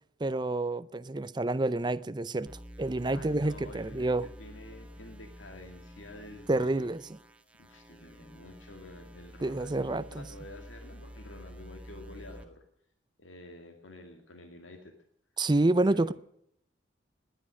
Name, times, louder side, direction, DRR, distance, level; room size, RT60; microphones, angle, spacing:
voice 1, 0.2-2.5 2.8-4.3 6.5-7.0 9.4-10.3 15.4-16.1, right 2 dB, 25° right, 0.5 m, -28 dB
sound 1, 2.5-12.4, equal, 5° right, 1.6 m, -49 dB
voice 2, 3.1-6.9 7.6-12.6 13.2-14.9 15.8-16.1, left 2 dB, 85° left, 2.1 m, -49 dB
20.0 x 9.8 x 6.3 m
head